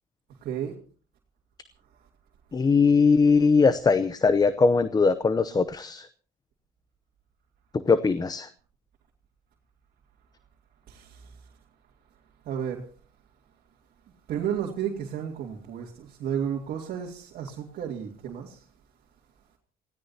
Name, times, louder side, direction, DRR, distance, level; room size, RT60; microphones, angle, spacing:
voice 1, 0.4-0.7 10.9-11.3 12.4-12.8 14.3-18.6, right 8 dB, 65° right, 2.5 m, -32 dB
voice 2, 2.5-6.1 7.7-8.5, left 4 dB, 25° left, 0.7 m, -21 dB
28.0 x 17.0 x 2.8 m
cardioid pair, 110°, 17 cm